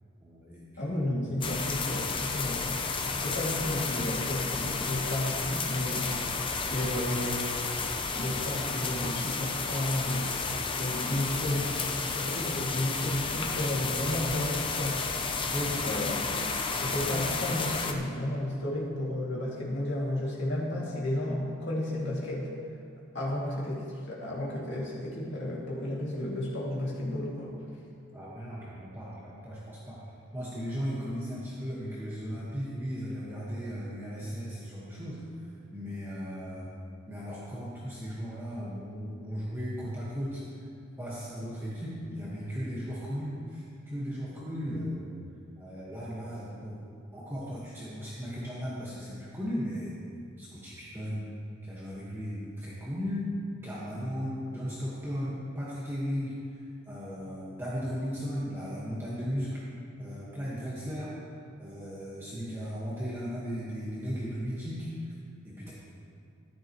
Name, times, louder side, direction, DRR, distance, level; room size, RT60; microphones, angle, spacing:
voice 1, 0.2-1.0 15.5-15.8 28.1-30.0 30.3-35.2 35.7-36.7 37.1-40.4 41.0-45.1 45.6-46.8 47.1-49.9 50.4-51.2 51.6-53.3 53.6-59.6 60.0-61.1 61.6-64.9 65.4-65.7, equal, 10° right, -8 dB, 1.5 m, -36 dB
voice 2, 0.8-2.7 3.1-6.1 6.7-7.5 8.1-10.3 10.8-11.8 12.0-15.0 15.7-16.2 16.8-22.5 23.1-27.5 44.0-44.2, left 1 dB, 55° left, -5 dB, 2.4 m, -32 dB
sound 1, 1.4-17.9, left 4 dB, 25° left, 0.6 m, -32 dB
13.5 x 11.5 x 3.1 m, 2.5 s
head